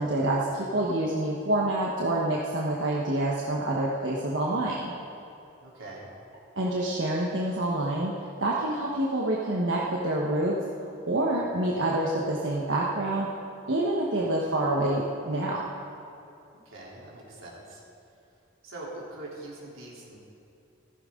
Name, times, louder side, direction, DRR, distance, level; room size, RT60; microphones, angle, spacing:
voice 1, 0.0-4.9 6.6-8.1 8.4-10.6 11.1-13.3 13.7-15.6, right 1 dB, 70° right, -4 dB, 1.3 m, -27 dB
voice 2, 5.6-6.1 16.7-17.8 18.6-20.2, right 2 dB, 90° right, -5 dB, 3.6 m, -42 dB
15.0 x 14.5 x 3.8 m, 2.7 s
head